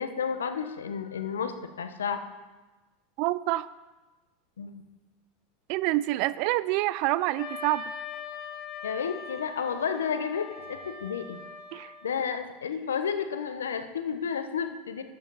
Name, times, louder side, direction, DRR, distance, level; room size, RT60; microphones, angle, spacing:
voice 1, 0.0-2.2 4.6-4.8 8.8-11.4 11.8-15.0, left 7 dB, 90° left, 9 dB, 0.8 m, -31 dB
voice 2, 3.2-3.7 5.7-7.9 11.7-11.9, right 17 dB, 60° right, 17 dB, 0.4 m, -27 dB
Wind instrument woodwind instrument, 7.4-12.3, left 5 dB, 45° left, 2.2 m, -41 dB
12.5 x 7.7 x 4.1 m, 1.2 s
hypercardioid pair, 95°, 0 cm